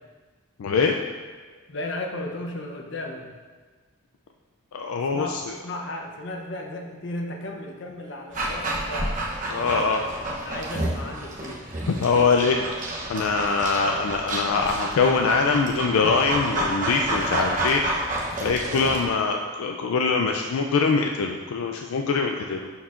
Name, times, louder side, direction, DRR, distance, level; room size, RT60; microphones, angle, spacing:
voice 1, 0.6-1.0 4.7-5.4 9.5-10.0 11.9-12.6 13.1-17.8 18.4-22.7, left 4 dB, 80° left, 3 dB, 0.4 m, -23 dB
voice 2, 1.7-3.3 5.1-9.2 9.5-11.7, left 1 dB, 55° left, 1 dB, 0.7 m, -35 dB
Dog, 8.3-19.1, right 1 dB, 35° right, 0.9 m, -29 dB
11.0 x 4.6 x 2.5 m, 1.4 s
head